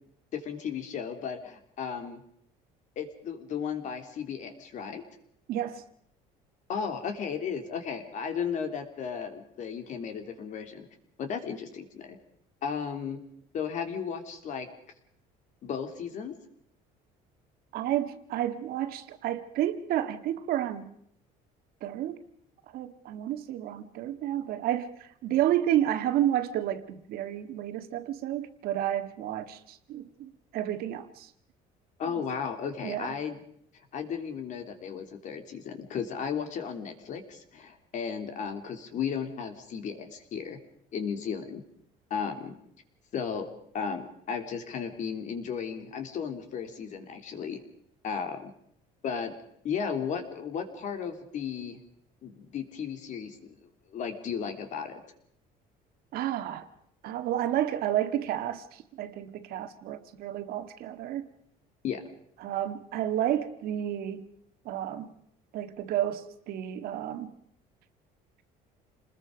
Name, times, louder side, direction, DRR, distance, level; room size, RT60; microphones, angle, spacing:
voice 1, 0.3-2.2 2.9-5.0 6.7-10.9 11.2-12.2 12.6-13.2 13.5-14.7 15.6-16.4 32.0-33.4 33.7-40.6 40.9-41.6 42.1-42.6 43.1-43.5 43.7-47.6 48.0-48.5 49.0-49.3 49.6-51.8 52.2-55.0 61.8-62.0, left 7 dB, 50° left, 3.2 m, -35 dB
voice 2, 5.5-5.8 17.7-20.9 21.8-22.2 22.7-31.3 32.8-33.1 56.1-56.7 57.0-61.3 62.4-64.3 64.7-65.1 65.5-67.3, right 12 dB, 65° right, 1.8 m, -31 dB
28.0 x 20.5 x 5.2 m
cardioid pair, 140°, 17 cm